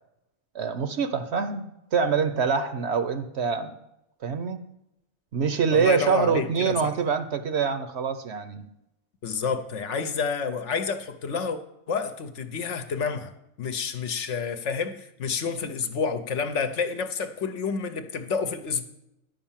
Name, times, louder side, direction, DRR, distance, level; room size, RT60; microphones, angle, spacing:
voice 1, 0.5-1.7 1.9-3.7 4.2-4.6 5.3-8.7, right 6 dB, 60° right, 9 dB, 0.9 m, -25 dB
voice 2, 5.7-6.9 9.2-11.6 11.9-13.3 13.6-18.8, left 5 dB, 65° left, 8 dB, 1.0 m, -29 dB
11.0 x 5.3 x 7.2 m, 0.85 s
omnidirectional pair, 1.4 m